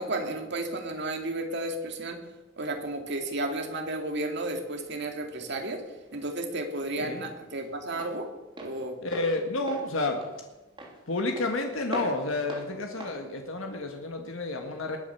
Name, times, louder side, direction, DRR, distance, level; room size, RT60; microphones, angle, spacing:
voice 1, 0.0-2.2 2.6-5.8 6.1-8.3 8.6-9.0, right 2 dB, 60° right, 4 dB, 2.5 m, -33 dB
Walk footsteps, 5.8-14.4, right 1 dB, 25° right, 3.3 m, -43 dB
voice 2, 7.0-7.3 9.0-10.2 11.1-15.0, left 2 dB, 75° left, 3 dB, 1.7 m, -30 dB
20.5 x 8.9 x 7.0 m, 1.1 s
head